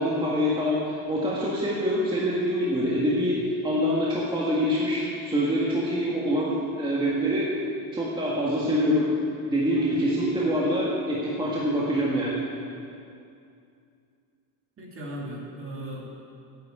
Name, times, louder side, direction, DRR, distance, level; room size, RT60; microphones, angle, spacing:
voice 1, 0.0-7.5 7.9-9.1 9.5-12.4, equal, 10° right, -6 dB, 1.7 m, -25 dB
voice 2, 14.8-16.1, right 1 dB, 30° right, -2 dB, 2.6 m, -37 dB
10.5 x 8.7 x 8.7 m, 2.5 s
cardioid pair, 150°, 40 cm